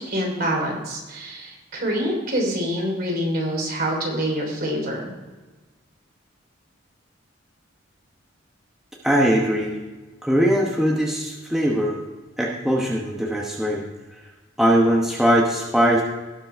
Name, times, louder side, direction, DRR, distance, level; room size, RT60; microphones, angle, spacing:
voice 1, 0.1-5.1, equal, 45° right, 0 dB, 3.3 m, -26 dB
voice 2, 9.0-9.8 10.2-12.0 12.4-13.8 14.6-16.0, equal, ahead, -2 dB, 1.0 m, -20 dB
18.0 x 6.1 x 4.5 m, 1.2 s
head